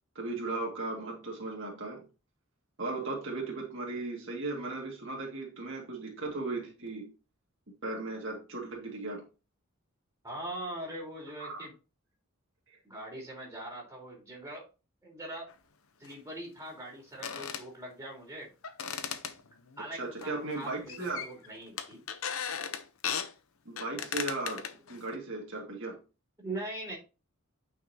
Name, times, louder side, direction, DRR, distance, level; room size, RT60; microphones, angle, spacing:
voice 1, 0.1-2.1 2.8-7.1 7.8-9.2 11.4-11.6 12.7-12.8 20.0-21.3 23.7-26.0, right 2 dB, 60° right, -1 dB, 2.2 m, -37 dB
voice 2, 10.2-11.7 12.8-14.6 15.0-15.5 16.0-18.5 19.8-22.0 26.4-27.0, right 1 dB, 15° right, -2 dB, 3.8 m, -41 dB
sound 1, 15.5-15.6 16.0-16.1 17.1-17.6 18.6-19.8 20.2-20.6 20.9-21.5 21.8-23.3 23.8-25.2, left 7 dB, 80° left, 0.9 m, -36 dB
9.2 x 5.9 x 2.8 m, 0.30 s
head